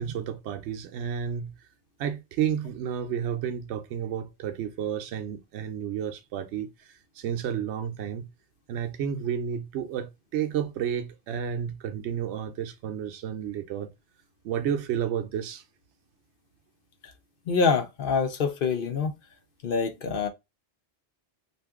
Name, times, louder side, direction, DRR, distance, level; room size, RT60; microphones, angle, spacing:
voice 1, 0.0-1.5 2.0-8.3 8.7-13.9 14.4-15.6, right 8 dB, 75° right, 0.8 m, -31 dB
voice 2, 17.5-19.2 19.6-20.3, left 5 dB, 55° left, 0.8 m, -25 dB
2.6 x 2.5 x 3.5 m
omnidirectional pair, 1.2 m